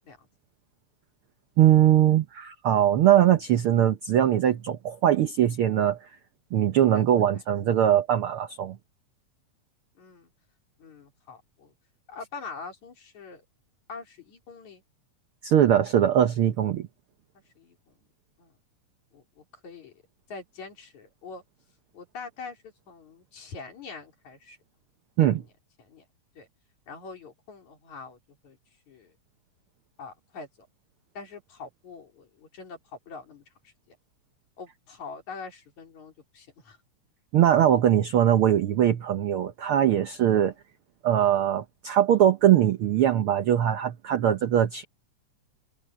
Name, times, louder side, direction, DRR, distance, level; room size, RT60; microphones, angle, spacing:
voice 1, 1.6-6.0 6.5-8.8 15.4-16.9 25.2-25.4 37.3-40.5 41.0-44.8, right 10 dB, 75° right, 1.2 m, -21 dB
voice 2, 10.0-10.3 10.8-11.7 12.1-13.4 13.9-14.8 17.6-17.9 18.4-18.5 19.1-19.9 20.3-21.4 21.9-24.6 25.3-25.5 25.8-26.0 26.4-26.5 26.9-28.2 28.4-28.6 28.9-29.1 30.0-30.5 31.2-32.8 33.1-34.0 34.6-36.8 40.4-40.5, left 4 dB, 65° left, 5.2 m, -44 dB
open air
omnidirectional pair, 3.6 m